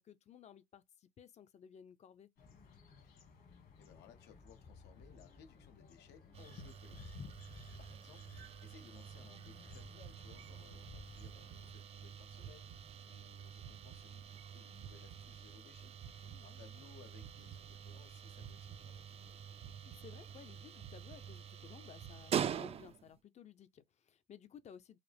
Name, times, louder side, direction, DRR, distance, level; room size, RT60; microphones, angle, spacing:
voice 1, 0.0-2.3 16.2-16.6 19.8-25.0, left 8 dB, 40° left, 0.5 m, -57 dB
sound 1, 2.4-11.7, left 5 dB, 60° left, 1.6 m, -56 dB
voice 2, 3.8-7.3 7.8-8.3 8.6-12.7 13.0-15.9 16.4-19.4, left 8 dB, 85° left, 0.9 m, -62 dB
sound 2, 6.3-23.2, right 8 dB, 35° right, 0.3 m, -46 dB
sound 3, 10.0-10.9 11.2-12.1 12.4-14.5 14.8-16.9 17.2-18.1 18.4-19.3 19.6-20.5 20.8-21.7 22.0-22.2, right 9 dB, 65° right, 0.7 m, -55 dB
4.8 x 2.0 x 3.4 m
cardioid pair, 110°, 17 cm